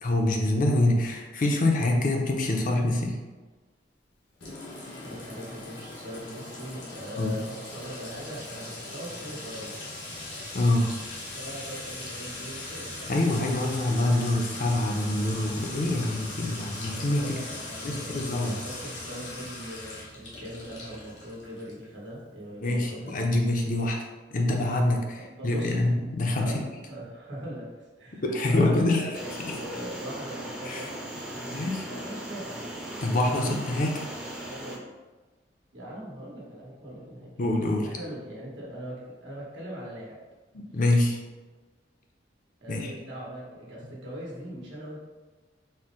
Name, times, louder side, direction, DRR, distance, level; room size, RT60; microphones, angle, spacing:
voice 1, 0.0-3.2 7.2-7.4 10.5-10.9 13.1-17.4 17.8-18.6 22.6-24.0 24.3-26.5 28.2-29.1 30.7-30.9 31.5-31.8 33.0-34.1 37.4-37.9 40.5-41.2 42.7-42.9, left 1 dB, 45° left, 1 dB, 0.5 m, -25 dB
Sink (filling or washing) / Trickle dribble / Fill (with liquid), 4.4-21.8, left 2 dB, 80° left, 1.0 m, -40 dB
voice 2, 4.9-9.8 11.3-13.1 16.3-23.1 24.9-25.8 26.4-30.9 31.3-31.5 31.9-32.6 32.9-33.6 34.4-34.8 35.7-37.3 37.8-40.2 42.6-45.0, equal, 85° right, -5 dB, 1.3 m, -41 dB
sound 1, 29.1-34.8, right 1 dB, 5° right, 0.5 m, -38 dB
4.4 x 2.1 x 3.7 m, 1.3 s
head